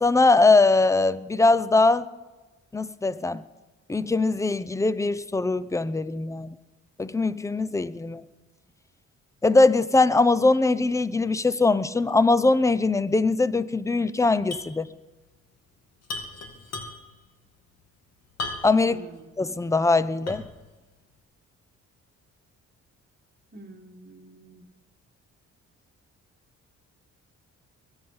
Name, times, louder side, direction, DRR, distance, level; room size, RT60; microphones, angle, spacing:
voice 1, 0.0-2.1 2.7-3.4 3.9-6.5 7.0-8.2 9.4-14.9 18.6-19.0 19.4-20.4, left 3 dB, 10° left, 16 dB, 0.6 m, -21 dB
sound 1, 14.5-14.8 15.0-15.1 16.0-17.2 18.4-18.9 19.4-19.5 20.3-20.6, left 2 dB, 55° left, 2.2 m, -35 dB
voice 2, 18.8-19.2 23.5-24.7, right 2 dB, 30° right, 3 dB, 1.7 m, -47 dB
22.5 x 8.9 x 5.6 m, 1.2 s
cardioid pair, 90°, 30 cm